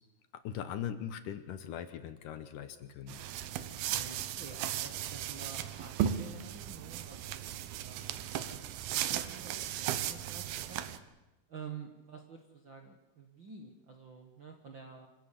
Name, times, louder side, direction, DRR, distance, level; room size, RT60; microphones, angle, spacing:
voice 1, 0.3-3.2, left 9 dB, 70° left, 10 dB, 2.3 m, -40 dB
sound 1, 3.1-11.0, right 11 dB, 80° right, 2.8 m, -36 dB
voice 2, 3.9-10.8 11.5-15.1, right 5 dB, 50° right, 3 dB, 1.5 m, -50 dB
26.5 x 15.0 x 8.5 m, 1.0 s
omnidirectional pair, 4.4 m